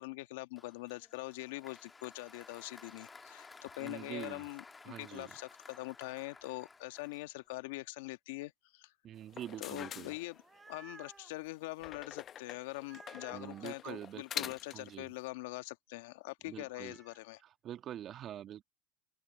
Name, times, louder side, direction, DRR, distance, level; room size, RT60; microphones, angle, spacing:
voice 1, 0.0-8.9 9.6-10.4 10.7-17.4, left 20 dB, 75° left, 1.5 m, -43 dB
Applause, 0.6-7.7, left 4 dB, 20° left, 1.7 m, -55 dB
voice 2, 3.8-4.5 4.8-5.4 9.0-10.2 13.3-15.1 16.4-17.0 17.4-18.6, right 11 dB, 45° right, 2.0 m, -46 dB
sound 1, 9.2-10.8 11.8-15.0, left 9 dB, 40° left, 0.8 m, -45 dB
sound 2, 10.2-11.3 12.8-13.7 16.5-17.3, right 4 dB, 20° right, 1.0 m, -56 dB
open air
hypercardioid pair, 95°, 0 cm